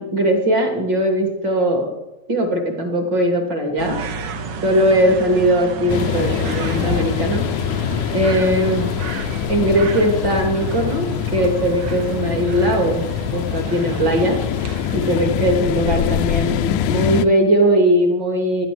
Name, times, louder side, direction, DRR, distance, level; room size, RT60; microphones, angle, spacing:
voice 1, 0.0-1.9 2.3-4.0 4.6-7.4 8.1-8.9 9.5-13.0 13.3-14.4 14.9-18.7, right 1 dB, 35° right, 4 dB, 3.3 m, -19 dB
sound 1, 3.8-15.3, right 5 dB, 60° right, 1.1 m, -32 dB
sound 2, 5.9-17.3, left 9 dB, 85° left, 2.2 m, -24 dB
15.5 x 11.5 x 7.9 m, 0.99 s
omnidirectional pair, 3.6 m